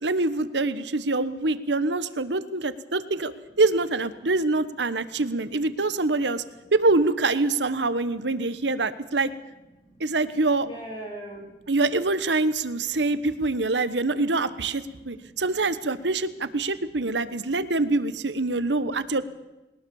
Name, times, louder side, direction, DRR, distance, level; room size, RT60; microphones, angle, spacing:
voice 1, 0.0-3.3 3.6-6.4 6.7-9.3 10.0-10.7 11.7-19.2, right 3 dB, 85° right, 14 dB, 1.2 m, -25 dB
voice 2, 10.6-11.7 14.9-15.4 17.0-17.1 18.6-18.7, right 1 dB, 25° left, 0 dB, 7.0 m, -41 dB
21.0 x 20.0 x 7.2 m, 1.0 s
head